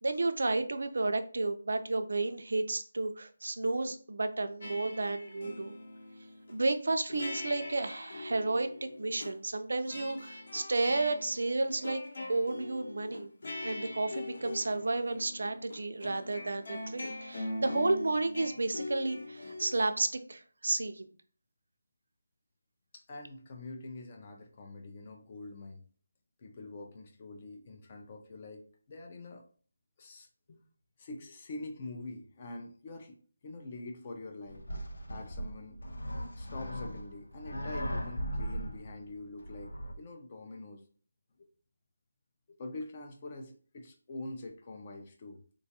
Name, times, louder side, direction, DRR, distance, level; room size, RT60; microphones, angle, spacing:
voice 1, 0.0-5.8 6.5-12.0 12.3-13.3 13.6-21.1, right 2 dB, 65° right, 8 dB, 0.4 m, -32 dB
sound 1, 4.6-6.6 7.1-9.3 9.8-19.9, left 2 dB, 50° left, 0.7 m, -42 dB
voice 2, 22.9-25.8 26.4-29.5 30.0-30.6 31.0-33.2 33.4-34.6 35.1-35.8 36.4-40.8 41.4-41.5 42.6-45.4, left 2 dB, 20° left, 4 dB, 0.4 m, -45 dB
sound 2, 34.5-39.9, equal, 85° left, 0.7 m, -38 dB
3.8 x 2.3 x 2.8 m, 0.43 s
figure-of-eight pair, 175°, 0 cm